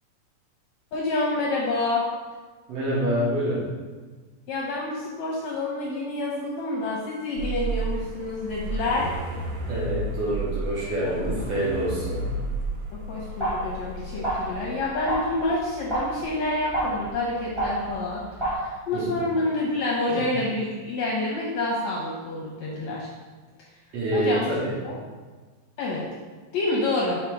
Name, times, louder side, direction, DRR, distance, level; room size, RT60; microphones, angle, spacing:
voice 1, 0.9-2.0 4.5-9.1 11.1-11.4 13.1-18.2 18.5-23.1 24.1-24.5 24.8-25.0 25.8-26.1 26.5-27.2, left 2 dB, 70° left, -3 dB, 1.7 m, -28 dB
voice 2, 2.7-3.6 9.7-12.4 18.9-19.2 20.1-20.2 23.9-24.7, right 1 dB, 60° right, -7 dB, 1.9 m, -27 dB
sound 1, 7.4-14.8, right 2 dB, 75° right, 2.3 m, -32 dB
sound 2, 13.4-18.5, right 1 dB, 15° right, 0.8 m, -30 dB
5.8 x 3.9 x 4.6 m, 1.4 s
omnidirectional pair, 3.9 m